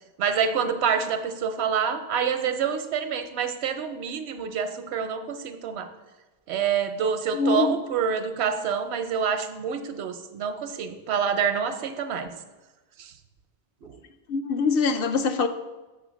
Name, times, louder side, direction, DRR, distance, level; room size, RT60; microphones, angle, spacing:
voice 1, 0.2-5.9 6.5-12.3 13.0-13.1 13.8-14.0, right 7 dB, 80° right, 9 dB, 0.9 m, -27 dB
voice 2, 7.3-7.7 14.3-15.5, left 4 dB, 65° left, 8 dB, 0.7 m, -23 dB
6.3 x 4.3 x 6.1 m, 1.2 s
omnidirectional pair, 1.1 m